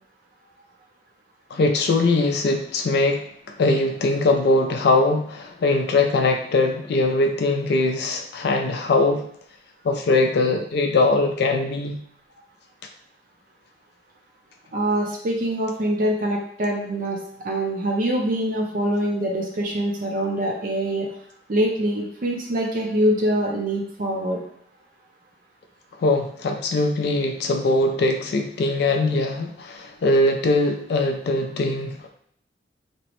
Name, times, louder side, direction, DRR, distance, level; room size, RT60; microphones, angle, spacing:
voice 1, 1.5-3.3 3.6-9.3 9.8-12.0 26.0-32.1, left 2 dB, 65° left, 4 dB, 0.3 m, -21 dB
voice 2, 14.7-21.1 21.5-24.4, right 1 dB, 50° right, -1 dB, 0.5 m, -24 dB
2.9 x 2.1 x 2.9 m, 0.67 s
head